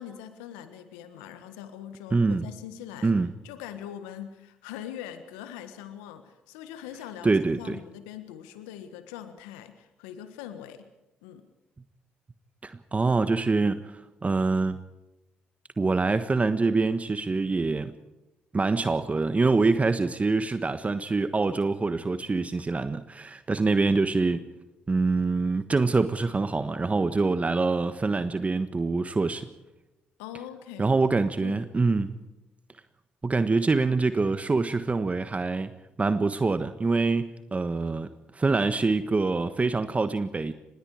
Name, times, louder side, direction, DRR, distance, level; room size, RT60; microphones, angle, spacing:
voice 1, 0.0-3.2 3.4-10.9 11.2-11.5 30.2-30.9 31.4-31.6, left 10 dB, 85° left, 10 dB, 1.5 m, -42 dB
voice 2, 2.1-2.4 3.0-3.3 7.2-7.8 12.6-14.8 15.8-17.9 18.5-24.4 24.9-29.5 30.8-32.1 33.2-35.7 36.0-38.1 38.3-40.5, right 3 dB, 30° right, 11 dB, 1.4 m, -25 dB
26.0 x 20.5 x 4.9 m, 1.0 s
hypercardioid pair, 50°, 5 cm